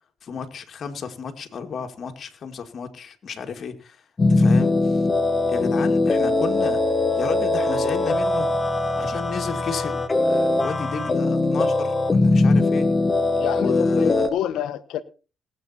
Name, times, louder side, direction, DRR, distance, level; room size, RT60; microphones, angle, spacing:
voice 1, 0.2-4.0 4.3-5.0 5.5-8.5 9.0-12.9 13.6-14.3, left 6 dB, 55° left, 2.2 m, -32 dB
sound 1, 4.2-14.3, left 2 dB, 30° left, 1.7 m, -21 dB
voice 2, 13.4-15.0, left 11 dB, 85° left, 1.3 m, -28 dB
19.5 x 8.0 x 4.3 m
cardioid pair, 90°, 0 cm